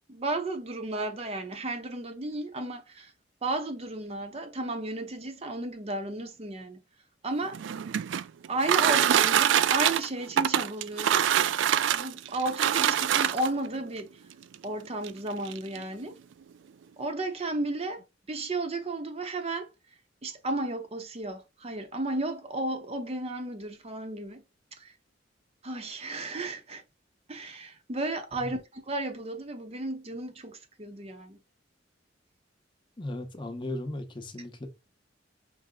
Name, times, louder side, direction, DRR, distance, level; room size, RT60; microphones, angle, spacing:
voice 1, 0.1-3.1 3.4-6.8 7.2-7.6 8.5-11.4 11.9-14.2 14.6-16.2 17.0-19.7 20.2-24.4 24.8-24.9 25.6-26.8 27.3-31.4, right 2 dB, 35° right, 0.7 m, -33 dB
sound 1, 7.4-13.7 14.5-14.6 15.0-15.1 15.4-15.8, right 10 dB, 80° right, 0.3 m, -24 dB
voice 2, 33.0-34.7, left 1 dB, 25° left, 0.8 m, -36 dB
5.4 x 2.0 x 3.7 m
head